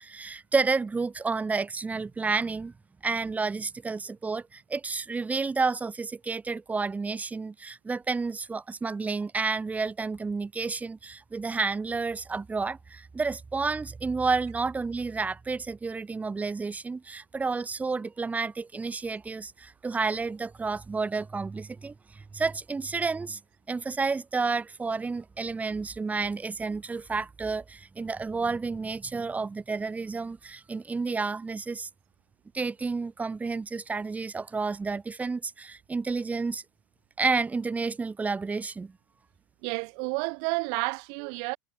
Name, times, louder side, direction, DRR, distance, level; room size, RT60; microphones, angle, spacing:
voice 1, 0.0-2.7 3.0-23.4 23.7-31.9 32.5-36.6 37.2-39.0, right 4 dB, 15° right, 3.1 m, -30 dB
voice 2, 39.6-41.6, right 40 dB or more, 55° right, 3.0 m, -30 dB
figure-of-eight pair, 85°, 10 cm